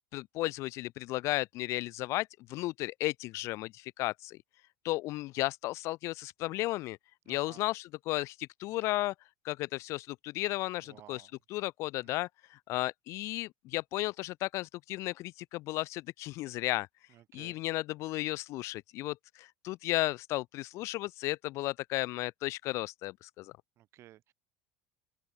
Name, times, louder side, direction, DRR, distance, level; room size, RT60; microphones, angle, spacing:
voice 1, 0.1-4.4 4.8-7.0 7.3-9.1 9.4-11.2 11.5-16.9 17.3-23.5, left 18 dB, 55° left, 0.6 m, -34 dB
voice 2, 7.2-7.6 10.8-11.3 12.0-12.2 17.1-17.6 23.8-24.3, right 13 dB, 50° right, 6.0 m, -56 dB
open air
hypercardioid pair, 70°, 6 cm